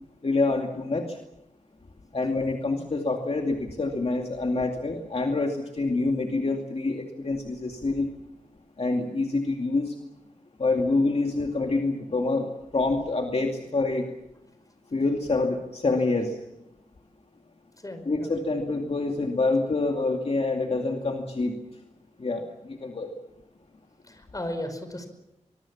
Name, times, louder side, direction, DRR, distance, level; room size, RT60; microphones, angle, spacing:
voice 1, 0.2-1.2 2.1-8.1 8.8-10.0 10.6-12.5 12.7-14.1 14.9-16.4 18.1-21.6 22.2-23.1, left 3 dB, 50° left, 2 dB, 2.4 m, -26 dB
voice 2, 17.8-18.3 24.1-25.1, left 1 dB, 30° left, 8 dB, 5.3 m, -35 dB
25.0 x 22.0 x 7.3 m, 0.88 s
wide cardioid pair, 85°, 13 cm